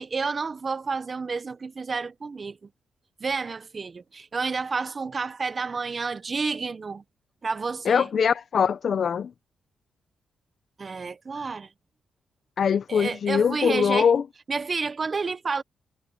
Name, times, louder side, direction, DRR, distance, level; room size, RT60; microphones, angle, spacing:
voice 1, 0.0-2.7 3.2-7.0 7.4-8.1 10.8-11.7 12.9-14.1 14.5-15.6, right 4 dB, 40° right, 1.1 m, -30 dB
voice 2, 7.8-9.3 12.6-14.2, left 7 dB, 65° left, 1.1 m, -22 dB
cardioid pair, 70°, 0 cm